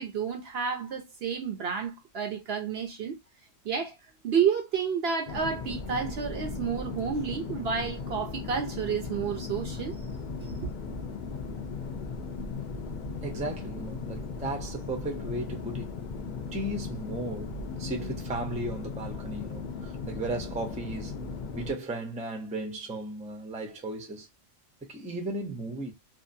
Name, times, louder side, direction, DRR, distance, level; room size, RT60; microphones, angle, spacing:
voice 1, 0.0-3.2 3.6-4.0 4.2-10.0 10.4-10.7, right 6 dB, 60° right, 0.7 m, -30 dB
sound 1, 5.3-21.7, left 4 dB, 60° left, 0.5 m, -37 dB
voice 2, 13.2-16.0 16.5-21.2 21.5-24.3 24.8-25.9, right 2 dB, 10° right, 0.4 m, -35 dB
2.7 x 2.3 x 2.6 m
omnidirectional pair, 1.4 m